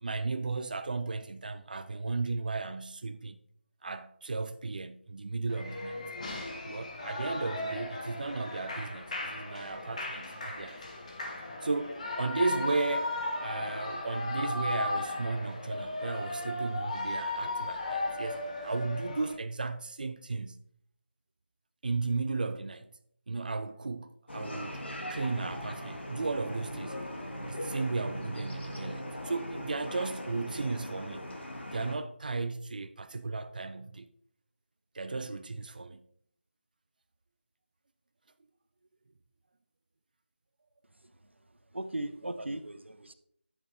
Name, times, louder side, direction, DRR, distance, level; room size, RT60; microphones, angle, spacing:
voice 1, 0.0-3.4 3.8-6.0 6.6-10.8 11.6-20.6 21.8-22.9 23.3-27.1 27.5-31.3 31.7-34.1 34.9-36.1, right 3 dB, 45° right, 0.4 m, -35 dB
Shout / Cheering, 5.5-19.4, left 2 dB, 35° left, 1.3 m, -36 dB
sound 1, 24.3-32.0, equal, 70° left, 1.7 m, -39 dB
voice 2, 41.7-43.1, right 1 dB, 75° right, 0.8 m, -37 dB
10.5 x 6.2 x 2.6 m
figure-of-eight pair, 165°, 6 cm